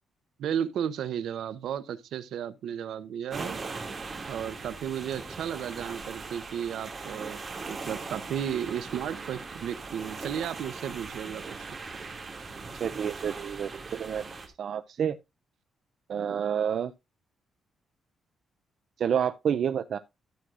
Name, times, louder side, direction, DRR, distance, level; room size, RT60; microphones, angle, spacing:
voice 1, 0.4-3.6 4.3-7.4 7.7-11.7, right 9 dB, 80° right, 0.8 m, -34 dB
sound 1, 3.3-14.5, right 4 dB, 30° right, 2.3 m, -40 dB
voice 2, 12.8-14.2 14.6-15.2 16.1-16.9 19.0-20.0, right 8 dB, 55° right, 0.4 m, -29 dB
12.5 x 7.7 x 2.5 m
cardioid pair, 140°, 0 cm